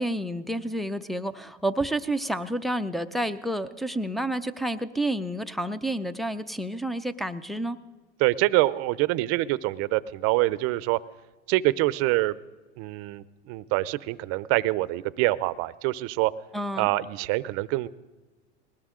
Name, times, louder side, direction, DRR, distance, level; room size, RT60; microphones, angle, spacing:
voice 1, 0.0-7.8 16.5-16.9, right 1 dB, ahead, 6 dB, 0.5 m, -29 dB
voice 2, 8.2-11.0 11.5-12.3 12.8-16.3 16.8-17.9, right 18 dB, 45° right, 18 dB, 0.6 m, -25 dB
20.5 x 18.0 x 3.7 m, 1.2 s
supercardioid pair, 120°, 33 cm